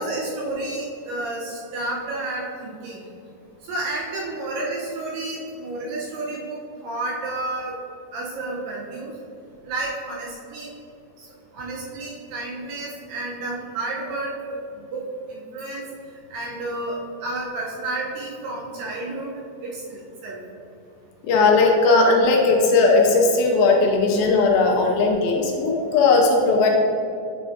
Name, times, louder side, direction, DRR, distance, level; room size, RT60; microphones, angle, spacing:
voice 1, 0.0-3.0 3.7-7.7 8.1-9.1 9.7-10.7 11.5-14.6 14.9-15.0 15.3-15.8 16.3-19.3 19.6-20.4, right 2 dB, 80° right, -3 dB, 2.2 m, -31 dB
voice 2, 21.2-26.7, left 3 dB, 80° left, 0 dB, 2.5 m, -17 dB
8.7 x 5.1 x 2.5 m, 2.5 s
omnidirectional pair, 4.4 m